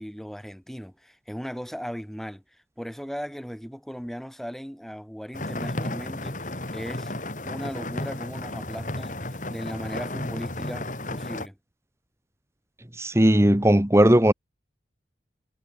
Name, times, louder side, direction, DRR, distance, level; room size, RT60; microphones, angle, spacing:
voice 1, 0.0-2.4 2.8-7.1 7.4-9.1 9.5-11.6, equal, ahead, 7.1 m, -37 dB
sound 1, 5.3-11.5, left 1 dB, 45° left, 3.8 m, -33 dB
voice 2, 13.0-14.3, right 1 dB, 15° right, 1.3 m, -17 dB
head